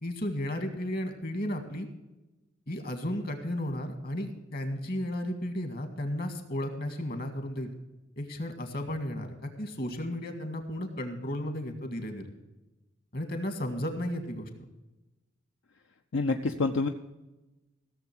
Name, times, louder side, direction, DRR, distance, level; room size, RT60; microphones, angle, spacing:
voice 1, 0.0-1.9 2.7-7.7 8.2-12.3 13.1-14.5, left 1 dB, 50° left, 7 dB, 1.9 m, -34 dB
voice 2, 16.1-16.9, left 3 dB, 80° left, 6 dB, 0.7 m, -27 dB
16.0 x 7.1 x 6.0 m, 1.0 s
head